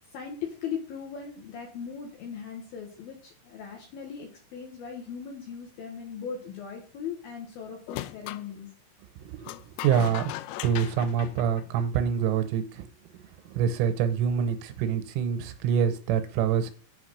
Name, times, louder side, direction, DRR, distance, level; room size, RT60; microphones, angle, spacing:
voice 1, 0.1-8.7, left 7 dB, 70° left, 1 dB, 2.4 m, -38 dB
sound 1, 7.9-8.5 9.4-12.2, left 16 dB, 90° left, 3.1 m, -38 dB
voice 2, 9.8-10.3 10.6-12.9 13.1-16.7, right 8 dB, 90° right, 9 dB, 3.3 m, -26 dB
7.3 x 4.2 x 6.3 m, 0.39 s
omnidirectional pair, 5.6 m